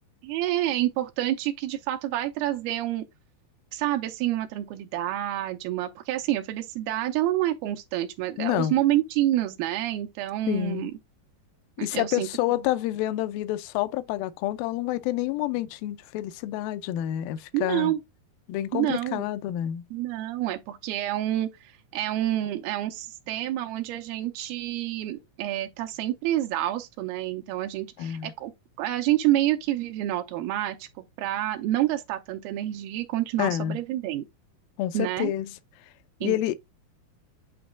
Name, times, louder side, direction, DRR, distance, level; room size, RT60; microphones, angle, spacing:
voice 1, 0.2-3.0 3.7-10.9 11.8-12.3 17.5-18.0 18.7-19.3 19.9-28.5 28.8-30.9 31.2-34.3 34.9-35.3 36.2-36.4, right 14 dB, 85° right, 2.5 m, -28 dB
voice 2, 8.4-8.7 10.5-10.9 11.8-17.9 18.5-19.8 28.0-28.3 33.4-33.8 34.8-35.5 36.2-36.6, left 13 dB, 80° left, 2.3 m, -28 dB
8.7 x 3.0 x 3.6 m
omnidirectional pair, 4.4 m